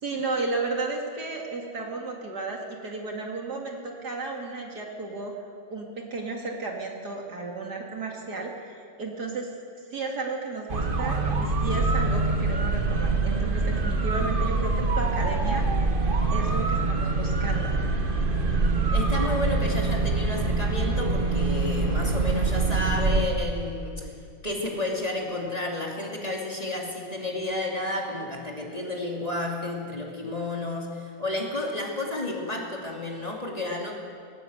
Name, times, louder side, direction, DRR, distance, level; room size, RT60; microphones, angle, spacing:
voice 1, 0.0-5.3 5.7-9.5 9.9-15.7 16.3-17.7, right 3 dB, 60° right, 0 dB, 2.8 m, -33 dB
sound 1, 10.7-23.3, right 3 dB, 30° right, 1.3 m, -25 dB
voice 2, 18.9-24.1 24.4-34.0, left 2 dB, 20° left, -2 dB, 3.0 m, -31 dB
19.5 x 18.0 x 8.0 m, 2.2 s
omnidirectional pair, 2.0 m